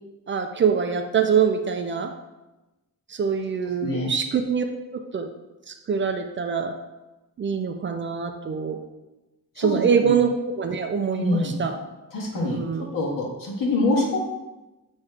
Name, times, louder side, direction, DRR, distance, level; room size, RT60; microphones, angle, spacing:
voice 1, 0.3-2.1 3.1-4.6 4.9-5.3 5.7-6.7 7.4-8.8 9.6-11.8 12.4-12.9, right 6 dB, 35° right, 5 dB, 0.4 m, -24 dB
voice 2, 3.8-4.1 9.6-10.1 11.2-11.6 12.1-12.6 12.9-14.2, left 2 dB, 70° left, -3 dB, 2.0 m, -25 dB
7.2 x 3.2 x 4.9 m, 1.1 s
cardioid pair, 155°, 35 cm